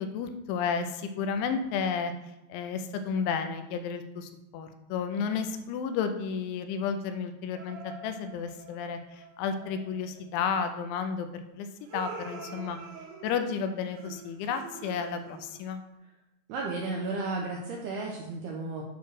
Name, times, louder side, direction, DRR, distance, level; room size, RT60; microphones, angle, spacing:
voice 1, 0.0-2.1 2.5-11.7 11.9-12.8 13.2-15.8, left 6 dB, 85° left, 8 dB, 3.0 m, -32 dB
sound 1, 7.5-10.2 11.8-15.7, right 4 dB, 65° right, 2.4 m, -46 dB
voice 2, 16.5-18.8, right 3 dB, 85° right, 0 dB, 2.3 m, -33 dB
9.2 x 3.1 x 6.1 m, 0.95 s
omnidirectional pair, 5.3 m